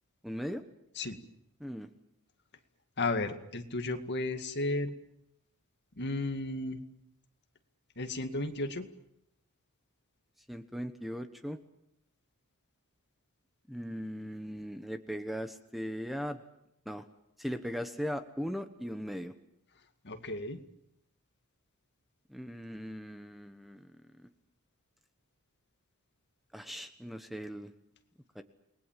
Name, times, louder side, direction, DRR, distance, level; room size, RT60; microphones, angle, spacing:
voice 1, 0.2-0.6 1.6-1.9 10.5-11.6 13.7-16.4 16.9-17.1 17.4-19.3 22.3-24.3 26.5-27.7 28.3-28.4, equal, ahead, 8 dB, 1.1 m, -39 dB
voice 2, 3.0-4.9 6.0-6.8 8.0-8.9 20.0-20.6, left 2 dB, 50° left, 6 dB, 2.2 m, -34 dB
29.0 x 20.5 x 7.6 m, 0.78 s
head